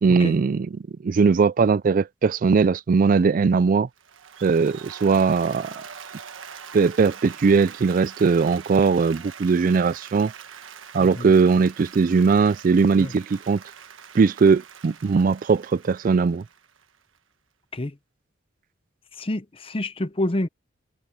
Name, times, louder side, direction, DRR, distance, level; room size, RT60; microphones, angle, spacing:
voice 1, 0.0-3.9 4.4-5.7 6.7-10.3 10.9-13.6 14.1-16.4, right 5 dB, 45° right, 0.3 m, -20 dB
Applause, 4.0-17.2, right 7 dB, 85° right, 1.3 m, -43 dB
voice 2, 11.0-11.3 13.0-13.1 17.7-17.9 19.2-20.5, left 1 dB, 30° left, 0.7 m, -28 dB
head